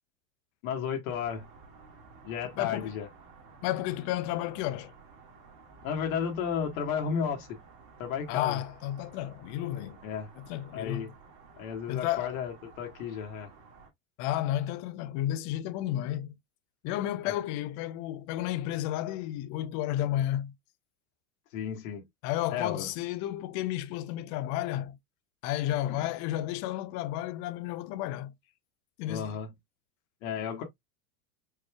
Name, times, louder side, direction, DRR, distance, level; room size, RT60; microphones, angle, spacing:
voice 1, 0.6-1.4 2.2-3.1 5.8-7.6 8.0-8.6 10.0-10.3 10.7-11.1 11.6-13.5 17.2-17.3 21.5-22.0 22.5-22.9 25.9-26.0 29.1-29.5 30.2-30.6, left 7 dB, 70° left, 1.6 m, -33 dB
sound 1, 1.1-13.9, right 4 dB, 45° right, 1.8 m, -54 dB
voice 2, 2.6-3.0 3.6-4.9 8.3-10.0 10.4-11.1 11.9-12.4 14.2-16.3 16.8-20.5 22.2-25.0 25.4-28.3 29.0-29.3, left 13 dB, 45° left, 0.6 m, -32 dB
4.5 x 3.1 x 2.3 m
supercardioid pair, 140°, 43 cm